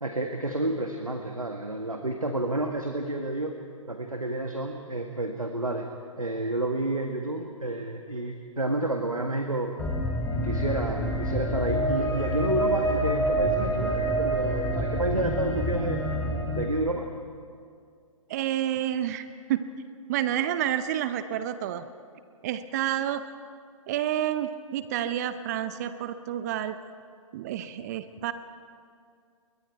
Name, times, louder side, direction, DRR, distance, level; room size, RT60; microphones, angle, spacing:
voice 1, 0.0-3.5 3.9-5.9 6.2-9.7 10.4-16.0 16.5-17.1, right 2 dB, 85° right, 4 dB, 1.7 m, -30 dB
sound 1, 9.8-16.6, right 1 dB, 5° left, 3.3 m, -27 dB
voice 2, 18.3-19.6 20.1-21.8 22.4-23.2 23.9-26.8 27.3-28.3, right 11 dB, 30° right, 12 dB, 0.7 m, -29 dB
29.0 x 22.5 x 4.6 m, 2.3 s
figure-of-eight pair, 125°, 17 cm